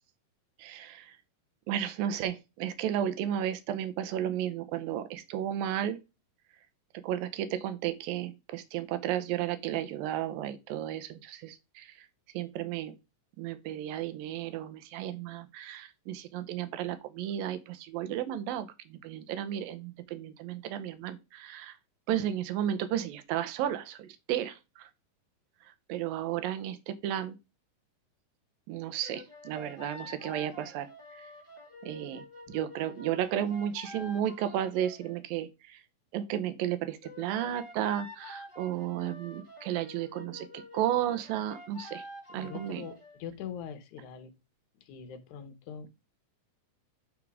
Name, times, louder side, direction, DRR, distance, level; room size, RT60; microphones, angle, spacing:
voice 1, 0.6-1.2 1.7-6.0 7.0-11.9 12.3-13.0 13.4-21.8 22.1-24.9 25.9-27.4 28.7-31.2 31.8-35.8 36.1-42.0 42.3-42.8, right 11 dB, 85° right, 2.6 m, -33 dB
sound 1, 29.0-35.2 37.0-43.2, left 1 dB, 20° left, 1.4 m, -48 dB
voice 2, 42.3-44.3 44.8-45.9, left 8 dB, 70° left, 2.3 m, -42 dB
9.0 x 3.6 x 4.7 m
omnidirectional pair, 4.0 m